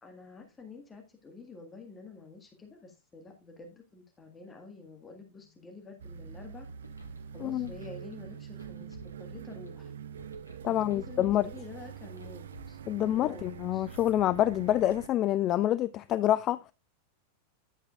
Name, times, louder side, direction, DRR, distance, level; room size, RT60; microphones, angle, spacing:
voice 1, 0.0-6.7 7.3-9.9 10.7-13.5 13.7-13.9, left 3 dB, 15° left, 1.7 m, -48 dB
sound 1, 6.0-15.1, right 8 dB, 65° right, 0.4 m, -45 dB
sound 2, 6.7-12.8, equal, 90° left, 1.4 m, -52 dB
voice 2, 10.6-11.5 12.9-16.6, left 12 dB, 35° left, 0.3 m, -27 dB
10.5 x 7.6 x 2.4 m
figure-of-eight pair, 90°, 0 cm